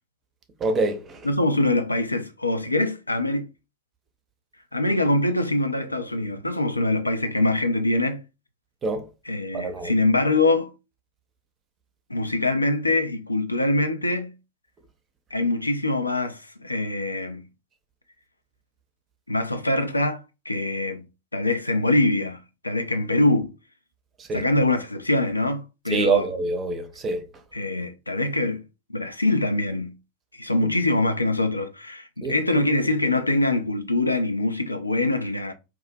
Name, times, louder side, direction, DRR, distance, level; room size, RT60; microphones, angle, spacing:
voice 1, 0.6-1.2 8.8-9.0 9.5-9.9 24.3-24.4 25.9-27.2 32.2-32.3, right 3 dB, 25° right, 0.5 m, -25 dB
voice 2, 1.2-3.5 4.7-8.2 9.2-10.7 12.1-14.3 15.3-17.4 19.3-21.0 21.3-22.4 22.6-23.5 24.3-26.3 27.5-28.6 28.9-29.9 30.4-35.5, left 2 dB, 85° left, 0.3 m, -24 dB
2.4 x 2.0 x 2.5 m
figure-of-eight pair, 90°, 0 cm